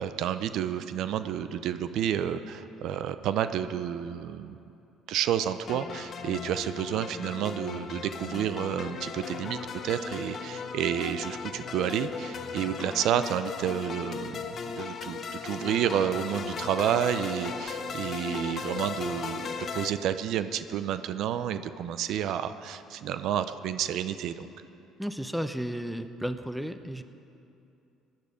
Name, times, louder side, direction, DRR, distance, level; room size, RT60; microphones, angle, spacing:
voice 1, 0.0-4.6 5.1-9.6 9.8-24.5, right 9 dB, 70° right, 12 dB, 0.5 m, -30 dB
sound 1, 5.7-19.9, left 5 dB, 45° left, 0.9 m, -37 dB
voice 2, 25.0-27.0, equal, 5° right, 10 dB, 0.7 m, -33 dB
16.5 x 10.5 x 5.1 m, 2.7 s
supercardioid pair, 90°, 0 cm